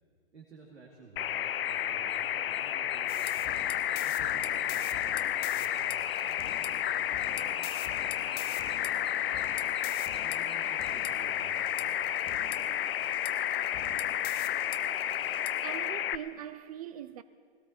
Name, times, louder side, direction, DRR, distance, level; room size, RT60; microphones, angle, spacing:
voice 1, 0.3-3.4 4.0-9.4 10.2-12.1, right 4 dB, 80° right, 2.7 m, -54 dB
sound 1, 1.2-16.1, left 11 dB, 55° left, 0.6 m, -31 dB
sound 2, 1.6-10.9, equal, ahead, 2.2 m, -62 dB
sound 3, 3.1-15.9, left 11 dB, 15° left, 0.6 m, -45 dB
voice 2, 15.6-17.2, right 10 dB, 35° right, 0.4 m, -41 dB
19.5 x 17.0 x 4.4 m
hypercardioid pair, 125°, 33 cm